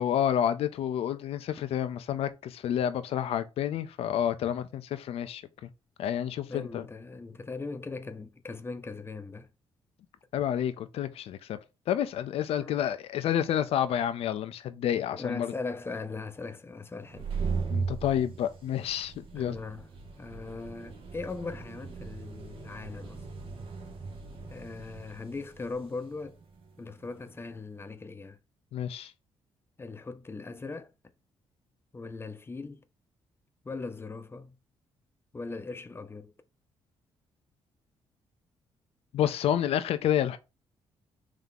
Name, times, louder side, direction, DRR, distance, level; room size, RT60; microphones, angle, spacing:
voice 1, 0.0-5.7 6.0-6.8 10.3-11.6 11.9-15.5 17.7-19.6 28.7-29.1 39.1-40.4, left 10 dB, 70° left, 0.4 m, -29 dB
voice 2, 6.5-9.5 12.6-12.8 15.1-17.3 19.4-19.9 20.2-23.2 24.5-26.4 26.8-28.4 29.8-30.9 31.9-32.8 33.6-34.6 35.3-36.3, left 3 dB, 20° left, 0.5 m, -39 dB
sound 1, 17.0-27.4, right 5 dB, 60° right, 1.2 m, -38 dB
3.7 x 2.8 x 3.6 m
cardioid pair, 80°, 10 cm